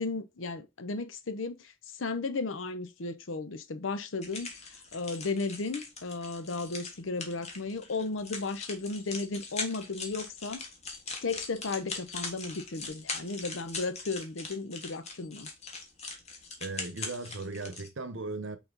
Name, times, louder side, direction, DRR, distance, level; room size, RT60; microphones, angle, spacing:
voice 1, 0.0-10.6 11.2-15.5, left 3 dB, 90° left, 0.8 m, -35 dB
sound 1, 4.2-17.9, left 3 dB, 35° left, 1.5 m, -41 dB
voice 2, 16.6-18.6, right 3 dB, 70° right, 0.9 m, -37 dB
5.9 x 4.2 x 3.9 m
head